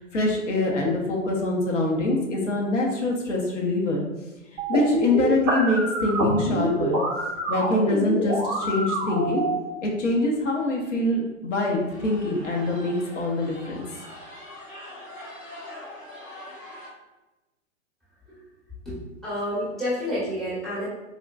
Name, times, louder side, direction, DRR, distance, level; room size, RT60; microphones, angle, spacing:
voice 1, 0.0-4.0 4.7-7.0 7.5-9.4 9.8-13.8, left 2 dB, 65° left, -1 dB, 0.7 m, -24 dB
sound 1, 2.2-2.3 2.7-3.2 6.4-6.5 7.6-7.7 8.0-8.3 8.8-8.9 9.6-9.7 10.0-10.1 10.6-11.0 11.6-16.9, left 1 dB, 90° left, 1.4 m, -44 dB
sound 2, 4.6-9.6, right 1 dB, 20° right, 0.3 m, -26 dB
voice 2, 18.8-20.9, equal, ahead, -10 dB, 0.7 m, -29 dB
3.7 x 2.1 x 2.2 m, 1.1 s
figure-of-eight pair, 110°, 39 cm